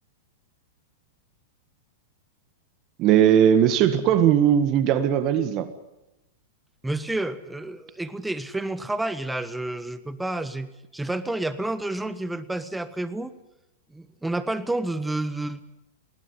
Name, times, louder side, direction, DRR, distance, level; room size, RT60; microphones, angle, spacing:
voice 1, 3.0-5.7, right 9 dB, 40° right, 12 dB, 1.7 m, -19 dB
voice 2, 6.8-13.4 13.9-15.6, right 2 dB, 5° right, 14 dB, 1.4 m, -30 dB
20.5 x 17.0 x 9.7 m, 0.93 s
hypercardioid pair, 110°, 0 cm